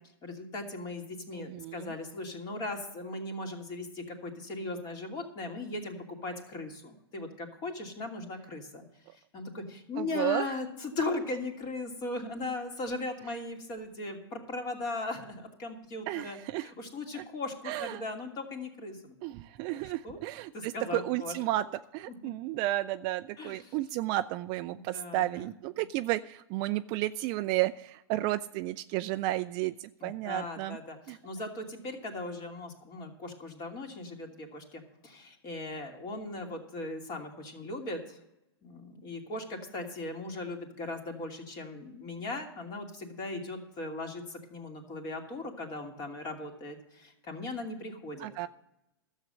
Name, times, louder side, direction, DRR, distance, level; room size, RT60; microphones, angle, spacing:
voice 1, 0.2-6.0 6.2-8.8 9.1-19.1 19.7-20.2 20.5-21.4 23.4-23.8 24.7-25.4 30.0-38.2 38.6-48.3, left 2 dB, 30° left, 3 dB, 2.7 m, -38 dB
voice 2, 1.3-1.9 10.0-10.5 16.1-16.7 17.1-17.2 17.6-18.0 19.2-21.7 21.9-30.8 31.1-31.2 48.2-48.5, right 16 dB, 35° right, 12 dB, 0.4 m, -32 dB
13.0 x 7.4 x 7.8 m, 0.90 s
hypercardioid pair, 135°, 14 cm